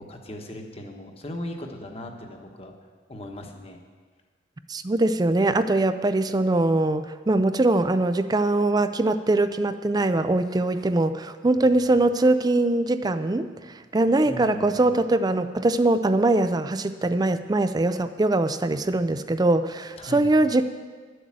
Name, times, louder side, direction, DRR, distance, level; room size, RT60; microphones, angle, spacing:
voice 1, 0.0-2.7 3.1-3.8 11.6-11.9 14.2-14.8 20.0-20.3, left 1 dB, 35° left, 3 dB, 1.3 m, -38 dB
voice 2, 4.7-13.5 13.9-20.6, right 2 dB, 20° right, 10 dB, 0.4 m, -22 dB
11.5 x 8.0 x 7.5 m, 1.5 s
head